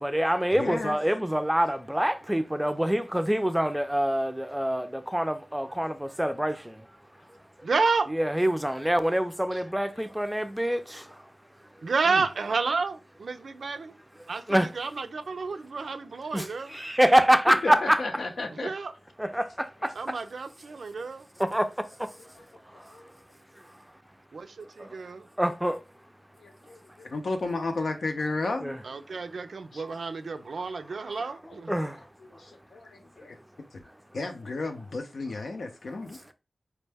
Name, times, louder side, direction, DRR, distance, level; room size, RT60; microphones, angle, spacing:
voice 1, 0.0-6.9 8.1-11.2 14.5-14.7 16.3-18.0 19.2-20.2 21.4-22.3 22.7-23.0 25.4-25.8 28.6-28.8 31.7-32.1, equal, 5° right, 0.4 m, -26 dB
voice 2, 0.6-1.0 9.9-10.0 12.0-12.2 15.8-16.0 17.6-18.7 22.2-22.4 22.7-23.1 26.4-28.7 29.7-29.8 31.5-31.8 32.2-33.4 33.7-33.8 34.1-36.3, left 3 dB, 90° left, 0.6 m, -34 dB
voice 3, 7.6-8.1 9.5-9.6 11.8-14.0 14.3-16.7 18.6-18.9 19.9-21.3 24.3-24.5 24.8-25.3 28.8-31.8, right 4 dB, 90° right, 0.4 m, -30 dB
4.5 x 2.1 x 3.3 m
wide cardioid pair, 80°, 0 cm